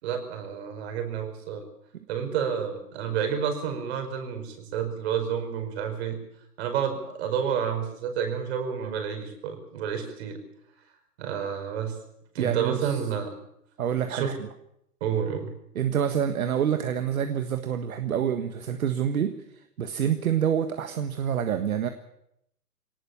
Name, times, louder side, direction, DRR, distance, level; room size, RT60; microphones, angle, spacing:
voice 1, 0.0-1.6 2.1-6.2 6.6-10.4 11.2-11.9 12.3-13.3 14.1-14.3 15.0-15.5, right 8 dB, 45° right, 6 dB, 5.3 m, -30 dB
voice 2, 12.4-13.0 13.8-14.5 15.7-19.3 19.8-21.9, right 8 dB, 65° right, 8 dB, 1.7 m, -27 dB
22.0 x 18.5 x 7.1 m, 0.78 s
hypercardioid pair, 135°, 46 cm